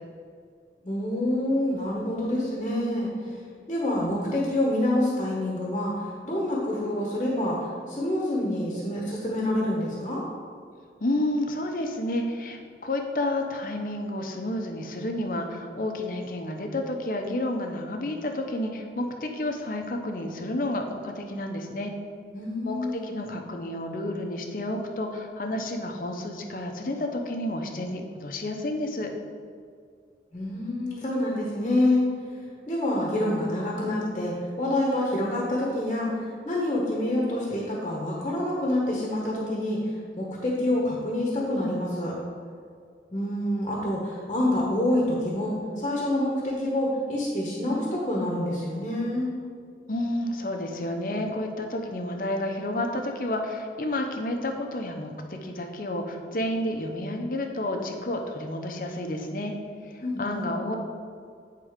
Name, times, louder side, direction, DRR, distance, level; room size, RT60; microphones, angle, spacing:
voice 1, 0.8-3.1 3.7-10.2 22.3-23.1 30.3-32.0 32.7-42.2 43.1-49.3 60.0-60.5, left 1 dB, 30° left, -4 dB, 1.1 m, -27 dB
voice 2, 11.0-21.9 22.6-29.1 49.9-59.5 59.8-60.8, left 1 dB, 50° left, 3 dB, 0.7 m, -30 dB
8.9 x 3.8 x 5.0 m, 2.2 s
head